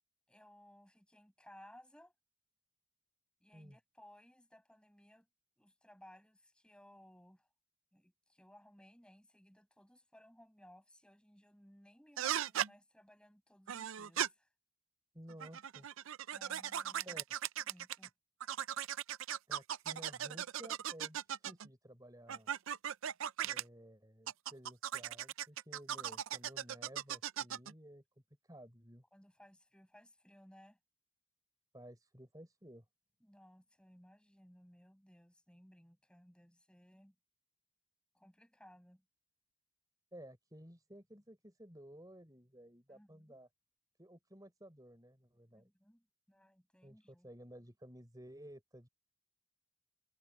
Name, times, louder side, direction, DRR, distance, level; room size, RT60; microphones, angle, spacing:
voice 1, 0.3-2.1 3.4-5.3 5.6-7.5 7.9-14.5 16.3-17.2 17.6-18.1 29.1-30.8 33.2-37.1 38.1-39.0 42.9-43.4 45.5-47.3, equal, 5° left, 6.2 m, -62 dB
sound 1, 12.2-12.7 13.7-14.3 15.3-18.1 18.4-21.7 22.3-23.6 24.3-27.7, right 10 dB, 70° right, 0.5 m, -38 dB
voice 2, 15.1-15.9 17.1-17.2 19.5-22.5 23.4-28.0 28.5-29.0 31.7-32.8 40.1-43.5 44.0-45.7 46.8-48.9, right 1 dB, 15° right, 4.4 m, -55 dB
head